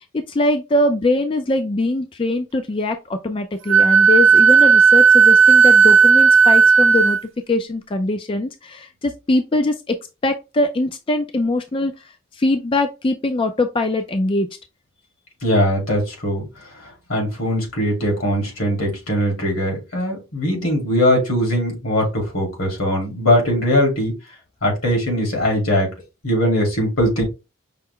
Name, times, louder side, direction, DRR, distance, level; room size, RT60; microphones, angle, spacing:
voice 1, 0.1-7.2 7.5-10.0 10.2-11.9 12.3-14.5, left 2 dB, 25° left, 0.3 m, -22 dB
Wind instrument woodwind instrument, 3.7-7.2, right 5 dB, 60° right, 0.5 m, -12 dB
voice 2, 15.4-16.5 17.1-24.2 24.6-25.9 26.2-27.2, equal, 85° left, 2.4 m, -20 dB
5.6 x 2.0 x 3.6 m
head